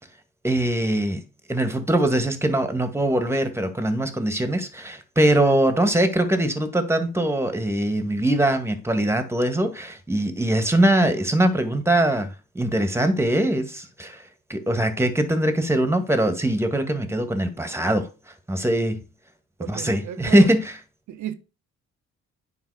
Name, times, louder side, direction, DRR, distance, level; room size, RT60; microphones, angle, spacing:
voice 1, 0.4-1.2 1.5-12.3 12.6-14.2 14.5-18.1 18.5-19.0 19.7-20.7, right 1 dB, 10° right, 1.9 m, -22 dB
voice 2, 19.6-20.5 21.1-21.3, right 11 dB, 75° right, 1.1 m, -34 dB
9.5 x 5.3 x 4.9 m
cardioid pair, 90°, 30 cm